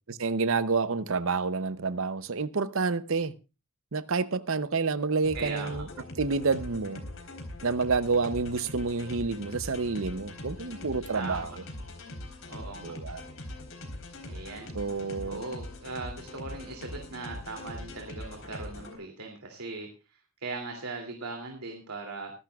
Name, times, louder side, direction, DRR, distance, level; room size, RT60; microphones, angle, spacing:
voice 1, 0.2-3.3 3.9-5.9 6.2-7.0 7.6-11.5 12.8-13.2 14.7-15.4, right 4 dB, 65° right, 0.7 m, -28 dB
sound 1, 5.2-19.0, left 1 dB, 65° left, 4.0 m, -42 dB
voice 2, 5.3-5.8 11.1-11.6 12.5-13.0 14.2-14.7 15.3-19.9 20.4-22.3, right 3 dB, 85° right, 2.8 m, -39 dB
24.0 x 12.0 x 2.4 m
head